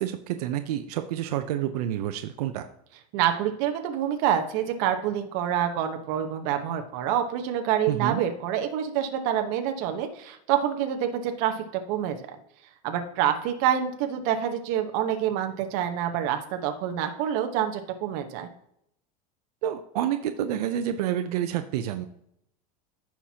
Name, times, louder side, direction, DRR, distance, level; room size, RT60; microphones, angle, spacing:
voice 1, 0.0-2.7 7.9-8.2 19.6-22.1, right 11 dB, 80° right, 8 dB, 0.7 m, -28 dB
voice 2, 3.1-12.2 12.8-18.5, right 10 dB, 50° right, 6 dB, 1.1 m, -27 dB
15.0 x 5.9 x 2.9 m, 0.76 s
supercardioid pair, 170°, 19 cm